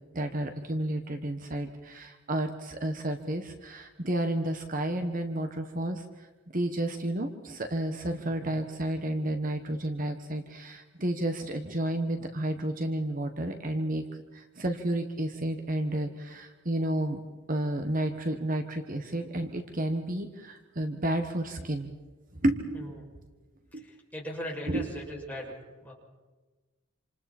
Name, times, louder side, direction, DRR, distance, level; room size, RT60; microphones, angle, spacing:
voice 1, 0.1-6.0 6.5-14.0 14.3-17.2 17.5-21.9 22.4-23.1 23.7-23.8 24.7-24.9, right 1 dB, 45° right, 6 dB, 1.4 m, -31 dB
voice 2, 22.8-23.1 23.7-25.9, equal, 10° left, -3 dB, 6.9 m, -39 dB
28.0 x 27.5 x 4.4 m, 1.2 s
head